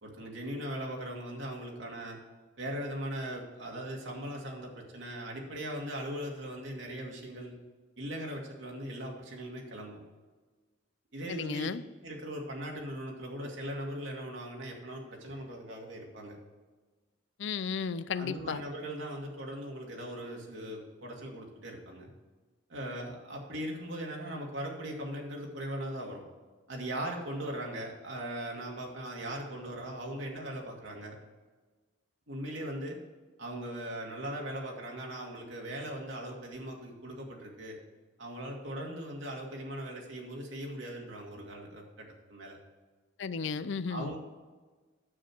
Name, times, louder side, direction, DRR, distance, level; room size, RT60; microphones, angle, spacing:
voice 1, 0.0-2.2 2.6-7.6 8.0-10.0 11.1-11.7 12.0-16.4 18.1-22.1 22.7-26.2 26.7-31.1 32.3-33.0 33.4-37.8 38.2-42.6 43.9-44.2, right 1 dB, 80° right, 0 dB, 2.5 m, -39 dB
voice 2, 11.3-11.8 17.4-18.6 43.2-44.1, left 5 dB, 70° left, 15 dB, 0.5 m, -34 dB
9.7 x 8.0 x 4.6 m, 1.3 s
head